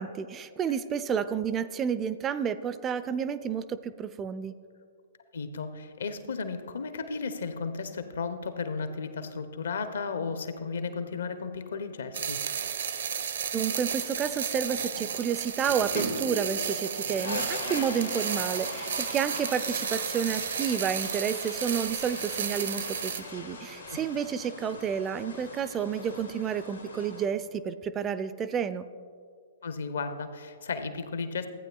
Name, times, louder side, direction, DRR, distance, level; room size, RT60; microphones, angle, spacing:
voice 1, 0.0-4.5 13.5-28.9, right 7 dB, 20° right, 13 dB, 0.3 m, -30 dB
voice 2, 5.3-12.4 23.9-24.0 29.6-31.5, left 4 dB, 65° left, 9 dB, 0.7 m, -34 dB
sound 1, 12.1-23.2, right 7 dB, 65° right, 0.6 m, -33 dB
sound 2, 13.6-22.0, right 2 dB, 80° right, 1.1 m, -45 dB
sound 3, 13.7-15.1 15.5-16.4 16.6-27.3, left 2 dB, 90° left, 1.7 m, -40 dB
14.5 x 8.9 x 2.3 m, 2.2 s
figure-of-eight pair, 115°, 0 cm